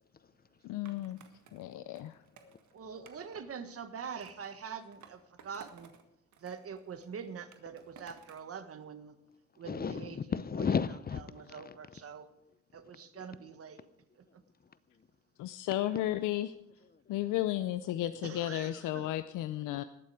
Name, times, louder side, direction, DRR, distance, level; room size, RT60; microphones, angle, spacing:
voice 1, 0.6-1.2 1.5-2.2 15.4-16.5 17.1-19.8, left 14 dB, 85° left, 0.6 m, -33 dB
Skateboard, 0.9-3.6 4.2-6.0 6.3-8.5, right 7 dB, 70° right, 1.7 m, -58 dB
voice 2, 2.7-5.9 6.4-9.2 9.6-10.2 11.3-12.3 12.7-13.8 14.1-14.4 18.2-19.1, right 6 dB, 50° right, 1.6 m, -44 dB
voice 3, 9.6-11.2 11.5-11.8 13.2-13.3, left 6 dB, 30° left, 0.7 m, -34 dB
20.0 x 7.6 x 4.9 m
cardioid pair, 90°, 30 cm